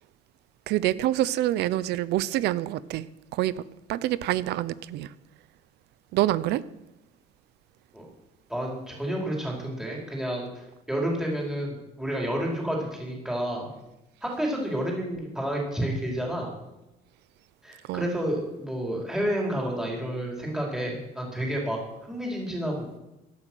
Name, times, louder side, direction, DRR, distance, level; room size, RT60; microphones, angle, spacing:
voice 1, 0.7-3.1 3.3-3.5 3.9-5.1 6.1-6.6 17.9-18.1, right 14 dB, 80° right, 17 dB, 0.8 m, -26 dB
voice 2, 8.5-10.5 10.9-13.7 14.2-16.5 17.6-23.0, equal, 5° right, -2 dB, 4.9 m, -30 dB
17.0 x 11.5 x 6.4 m, 0.93 s
cardioid pair, 110°, 17 cm